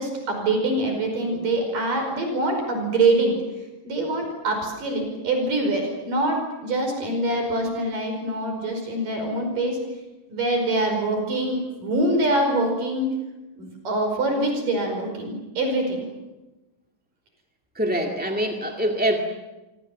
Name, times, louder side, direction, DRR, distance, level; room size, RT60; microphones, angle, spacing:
voice 1, 0.0-3.3 3.8-9.8 10.3-13.1 13.6-16.0, right 2 dB, 70° right, 3 dB, 6.8 m, -24 dB
voice 2, 17.7-19.2, right 1 dB, 5° right, 2 dB, 1.2 m, -24 dB
28.0 x 25.0 x 7.4 m, 1.1 s
omnidirectional pair, 3.9 m